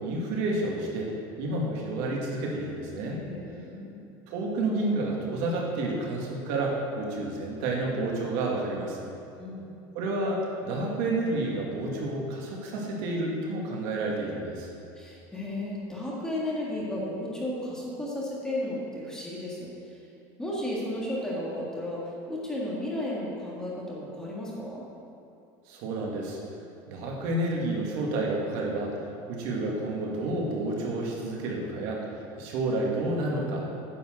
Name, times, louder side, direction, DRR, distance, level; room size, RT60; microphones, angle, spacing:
voice 1, 0.0-1.1 1.4-3.2 4.3-9.1 9.9-14.7 25.7-26.4 26.9-29.0 29.3-32.0 32.4-33.7, right 2 dB, 65° right, -2 dB, 2.2 m, -30 dB
voice 2, 3.1-4.0 9.4-9.7 15.0-20.0 20.4-22.0 22.3-24.8, left 1 dB, 5° left, -6 dB, 1.9 m, -34 dB
9.8 x 7.4 x 6.5 m, 2.7 s
cardioid pair, 165°, 10 cm